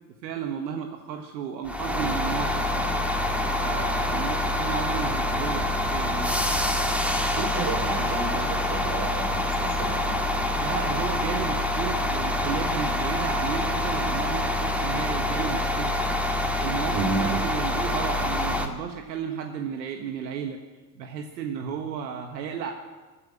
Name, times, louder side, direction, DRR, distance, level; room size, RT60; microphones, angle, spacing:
voice 1, 0.2-2.9 3.6-6.4 10.6-15.9 16.3-20.6 21.0-22.7, right 7 dB, 85° right, 4 dB, 1.6 m, -33 dB
sound 1, 1.6-18.7, left 1 dB, 5° right, 1.9 m, -26 dB
voice 2, 7.4-10.2 16.9-17.3, right 4 dB, 55° right, 3 dB, 3.8 m, -31 dB
16.5 x 10.0 x 8.8 m, 1.3 s
hypercardioid pair, 95°, 50 cm